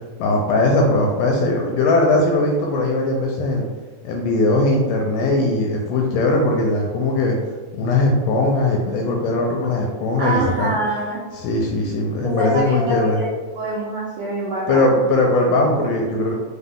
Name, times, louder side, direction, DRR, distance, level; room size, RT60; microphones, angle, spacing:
voice 1, 0.2-3.7 4.0-7.4 7.7-10.7 11.3-13.2 14.7-16.3, left 2 dB, 80° left, 0 dB, 1.9 m, -19 dB
voice 2, 10.2-11.2 12.2-13.3 13.6-15.0, right 1 dB, 85° right, -7 dB, 1.5 m, -25 dB
5.4 x 2.1 x 3.5 m, 1.4 s
omnidirectional pair, 4.1 m